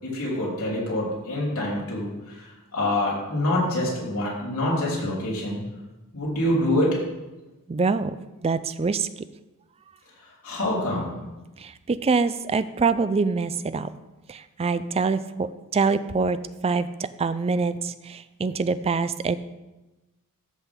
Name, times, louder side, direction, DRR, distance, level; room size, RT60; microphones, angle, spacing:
voice 1, 0.0-5.6 6.1-7.0 10.2-11.1, left 1 dB, 70° left, -5 dB, 3.5 m, -26 dB
voice 2, 7.7-8.1 8.4-9.1 11.6-13.9 14.3-16.4 16.6-16.9 17.2-19.4, right 4 dB, 25° right, 14 dB, 0.4 m, -25 dB
13.5 x 6.1 x 3.7 m, 1.1 s
head